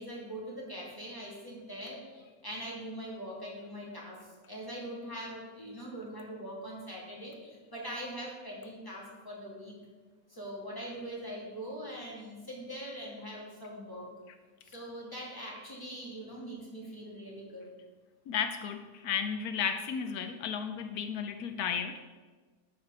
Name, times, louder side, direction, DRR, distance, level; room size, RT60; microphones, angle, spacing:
voice 1, 0.0-4.2 4.5-9.7 10.3-14.0 14.6-17.7, equal, 15° left, -4 dB, 2.7 m, -42 dB
voice 2, 18.3-22.0, left 7 dB, 80° left, 9 dB, 1.1 m, -34 dB
11.5 x 5.0 x 6.7 m, 1.4 s
omnidirectional pair, 1.6 m